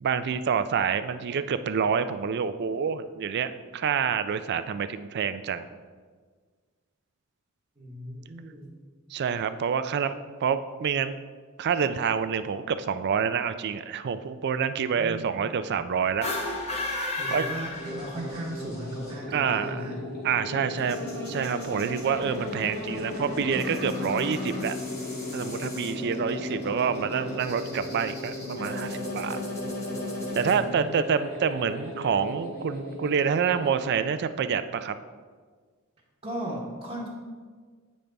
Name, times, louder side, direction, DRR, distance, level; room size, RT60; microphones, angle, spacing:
voice 1, 0.0-5.7 9.1-11.2 11.6-16.3 17.3-17.5 19.3-19.8 20.2-21.0 21.3-24.7 25.3-29.4 30.4-34.9, right 6 dB, 50° right, 12 dB, 0.4 m, -27 dB
voice 2, 7.8-8.7 14.7-15.3 17.1-20.0 30.5-31.0 36.2-37.1, right 1 dB, 30° right, -8 dB, 1.1 m, -37 dB
sound 1, 16.1-18.4, left 2 dB, 30° left, 0.9 m, -32 dB
sound 2, 17.7-33.8, left 2 dB, 50° left, 2.2 m, -35 dB
8.6 x 5.2 x 3.4 m, 1.5 s
head